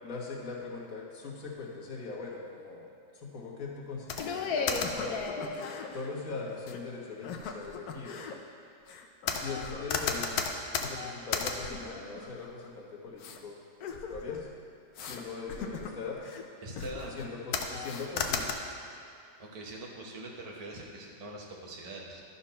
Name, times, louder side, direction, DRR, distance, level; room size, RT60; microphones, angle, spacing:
voice 1, 0.0-2.9 3.1-5.4 5.9-8.3 9.3-10.5 10.7-13.6 14.1-14.5 15.0-16.2 17.0-18.5, left 4 dB, 55° left, -4 dB, 1.7 m, -40 dB
sound 1, 4.1-6.1 6.7-6.8 7.2-8.3 8.9-12.7 13.2-13.4 13.8-14.5 15.0-15.2 15.5-16.4 16.8-17.3 17.5-18.5, left 5 dB, 70° left, 1.1 m, -34 dB
voice 2, 16.6-17.2 19.4-22.2, right 1 dB, 35° right, -2 dB, 0.6 m, -43 dB
12.0 x 4.2 x 5.6 m, 2.6 s
omnidirectional pair, 1.8 m